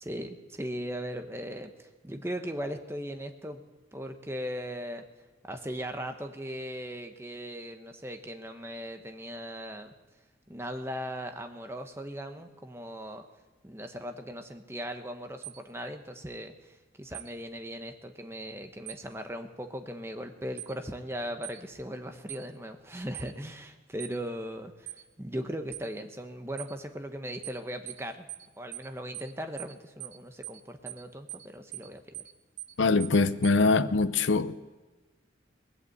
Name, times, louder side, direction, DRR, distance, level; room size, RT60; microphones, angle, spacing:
voice 1, 0.0-3.6 3.9-5.0 5.5-9.9 10.5-13.2 13.6-28.3 28.6-32.2, equal, 15° right, 0.9 m, -38 dB
sound 1, 15.4-15.6 17.1-17.3 18.9-19.0 20.6-20.7 21.4-21.6 22.3-22.5 23.1-23.3 24.0-24.2 24.9-25.0 25.7-25.9 26.6-26.7 27.4-27.6 27.9-28.0 28.3-28.5 28.7-28.9 29.1-29.3 29.6-29.7 30.0-30.2 30.4-30.6 30.9-31.0 31.3-31.5 31.7-31.9 32.1-32.3 32.6-32.7 33.0-33.2 33.4-33.6, right 16 dB, 80° right, 0.7 m, -41 dB
voice 2, 32.8-34.6, left 3 dB, 75° left, 0.6 m, -23 dB
19.5 x 8.4 x 7.8 m
head